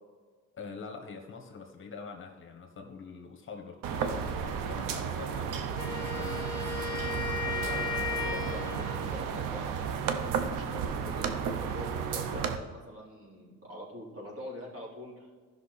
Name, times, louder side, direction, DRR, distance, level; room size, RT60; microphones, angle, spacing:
voice 1, 0.5-6.6, left 5 dB, 40° left, 3 dB, 1.3 m, -45 dB
sound 1, 3.8-12.6, right 7 dB, 85° right, 0.9 m, -33 dB
Wind instrument woodwind instrument, 5.8-9.1, left 6 dB, 15° left, 1.7 m, -35 dB
voice 2, 7.6-15.3, equal, 45° right, -3 dB, 3.2 m, -44 dB
14.5 x 5.8 x 4.2 m, 1.5 s
cardioid pair, 115°, 32 cm